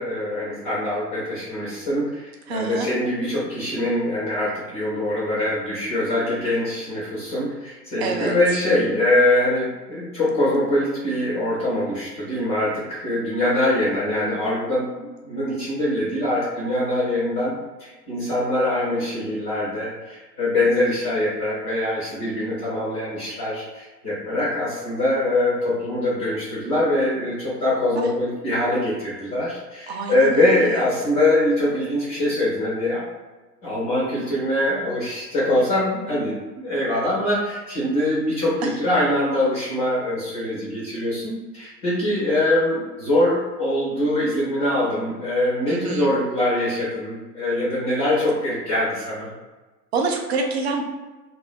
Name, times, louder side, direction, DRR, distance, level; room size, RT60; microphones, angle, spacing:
voice 1, 0.0-2.2 2.5-17.5 17.8-33.0 33.6-49.3, left 1 dB, 15° left, -8 dB, 0.5 m, -23 dB
voice 2, 2.5-2.9 8.0-8.4 29.9-30.8 45.7-46.1 49.9-50.8, right 4 dB, 40° right, 2 dB, 0.5 m, -26 dB
2.6 x 2.2 x 3.4 m, 1.2 s
figure-of-eight pair, 115°, 49 cm